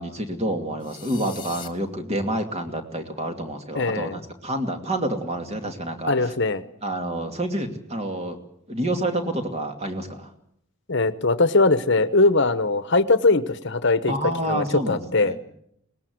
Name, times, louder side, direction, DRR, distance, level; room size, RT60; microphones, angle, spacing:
voice 1, 0.0-6.3 6.8-8.4 8.7-10.3 14.1-15.4, right 1 dB, 30° right, 5 dB, 2.5 m, -28 dB
sound 1, 0.8-1.7, left 8 dB, 20° left, 1.9 m, -40 dB
voice 2, 3.7-4.2 6.1-6.6 10.9-14.1 14.4-15.3, left 3 dB, 55° left, 13 dB, 1.2 m, -21 dB
22.5 x 19.5 x 8.0 m, 0.70 s
head